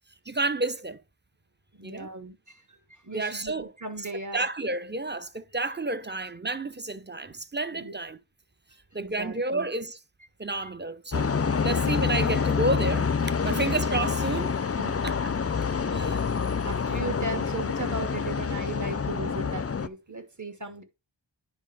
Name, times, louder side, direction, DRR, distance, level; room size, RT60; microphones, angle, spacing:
voice 1, 0.3-1.0 1.8-2.1 3.1-3.7 4.3-8.2 8.9-10.0 10.4-13.1 13.4-14.5 15.0-15.3 15.9-16.2, right 2 dB, 20° right, 0.8 m, -30 dB
voice 2, 1.7-4.5 7.7-7.9 9.0-9.7 13.5-13.8 14.8-14.9 15.7-16.0 16.3-20.8, right 2 dB, 40° right, 1.7 m, -37 dB
sound 1, 11.1-19.9, left 5 dB, 30° left, 0.5 m, -27 dB
9.9 x 5.2 x 3.5 m
wide cardioid pair, 40°, 47 cm